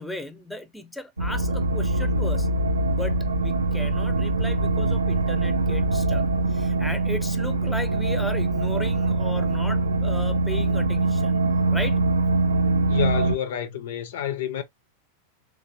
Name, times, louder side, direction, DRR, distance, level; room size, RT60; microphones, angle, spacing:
voice 1, 0.0-2.5 2.9-11.4 11.7-12.0, left 1 dB, 5° left, 0.6 m, -36 dB
sound 1, 1.2-13.4, right 2 dB, 75° right, 0.4 m, -23 dB
voice 2, 12.9-14.6, left 9 dB, 55° left, 0.5 m, -29 dB
3.3 x 3.2 x 2.7 m
figure-of-eight pair, 90°, 0 cm